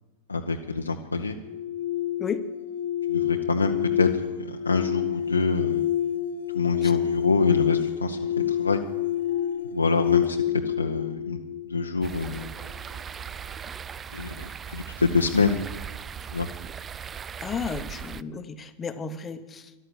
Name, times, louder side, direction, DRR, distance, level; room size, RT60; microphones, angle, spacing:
voice 1, 0.3-1.4 3.1-4.1 4.4-5.8 6.5-8.2 8.5-8.8 9.7-10.4 10.6-11.4 11.7-12.5 14.1-14.4 14.7-15.6 16.3-16.5, left 3 dB, 80° left, 3 dB, 0.7 m, -25 dB
sound 1, 1.4-12.5, left 11 dB, 65° left, 1.1 m, -28 dB
sound 2, 12.0-18.2, right 7 dB, 20° right, 0.4 m, -38 dB
voice 2, 17.4-19.7, left 5 dB, 20° left, 11 dB, 1.0 m, -33 dB
13.5 x 12.0 x 8.3 m, 1.2 s
figure-of-eight pair, 90°, 0 cm